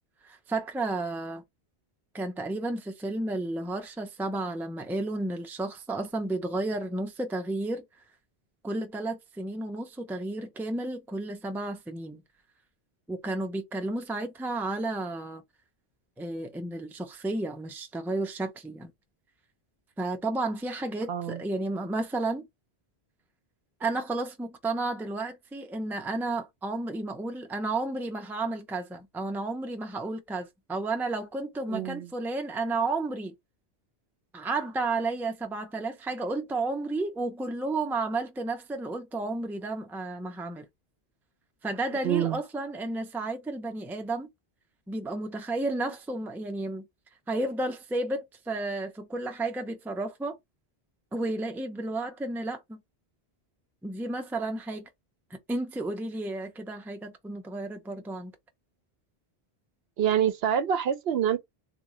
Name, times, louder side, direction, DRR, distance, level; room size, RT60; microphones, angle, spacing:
voice 1, 0.2-1.4 2.1-7.8 8.6-12.2 13.1-15.4 16.2-18.9 20.0-22.5 23.8-33.3 34.3-40.7 41.6-44.3 44.9-46.9 47.3-50.4 51.1-52.8 53.8-54.9 55.3-58.3, right 2 dB, 5° right, 0.4 m, -32 dB
voice 2, 21.1-21.4 31.7-32.1 42.0-42.4 60.0-61.4, right 9 dB, 70° right, 0.8 m, -26 dB
3.6 x 2.6 x 3.0 m
omnidirectional pair, 1.1 m